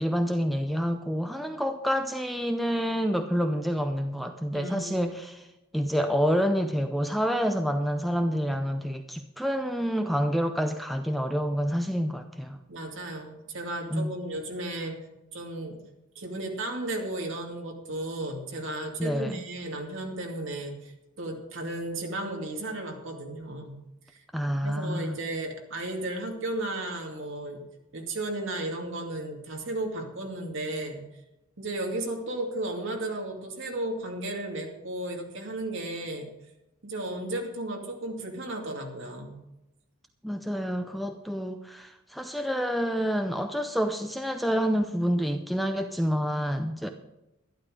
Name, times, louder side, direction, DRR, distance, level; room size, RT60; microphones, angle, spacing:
voice 1, 0.0-5.5 5.7-12.6 13.9-14.1 19.0-19.4 24.3-25.2 40.2-46.9, equal, ahead, 6 dB, 0.5 m, -28 dB
voice 2, 4.5-5.1 12.7-15.0 15.3-15.8 16.1-20.9 21.2-23.8 24.1-24.2 24.6-27.6 27.9-31.1 31.6-36.3 36.8-39.4, right 1 dB, 55° right, 1 dB, 2.4 m, -34 dB
12.0 x 12.0 x 5.0 m, 0.95 s
head